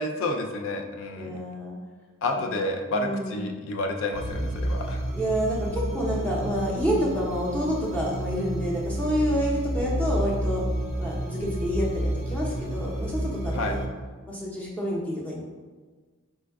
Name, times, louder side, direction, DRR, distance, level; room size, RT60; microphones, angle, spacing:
voice 1, 0.0-1.3 2.2-5.0 13.5-13.8, left 2 dB, 80° left, 3 dB, 0.4 m, -30 dB
voice 2, 1.2-1.8 2.3-2.5 2.9-3.4 5.1-10.6 11.0-13.8 14.3-15.4, equal, 5° left, -5 dB, 0.6 m, -28 dB
sound 1, 4.1-13.9, right 1 dB, 35° right, 0.4 m, -30 dB
4.4 x 2.2 x 3.4 m, 1.4 s
head